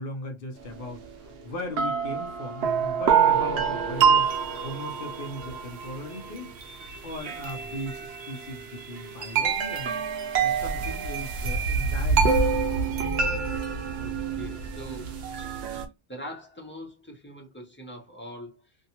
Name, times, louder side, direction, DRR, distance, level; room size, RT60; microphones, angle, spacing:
voice 1, 0.0-4.3 4.6-6.6 7.0-10.0 10.4-12.6, left 1 dB, 60° left, 0.8 m, -38 dB
sound 1, 1.0-1.1 1.8-15.9, right 6 dB, 80° right, 0.9 m, -26 dB
Wind instrument woodwind instrument, 2.0-6.7, left 3 dB, 40° right, 0.8 m, -50 dB
voice 2, 12.6-13.7 14.0-15.2 16.1-18.8, equal, 15° left, 0.7 m, -43 dB
2.7 x 2.2 x 2.8 m
omnidirectional pair, 1.1 m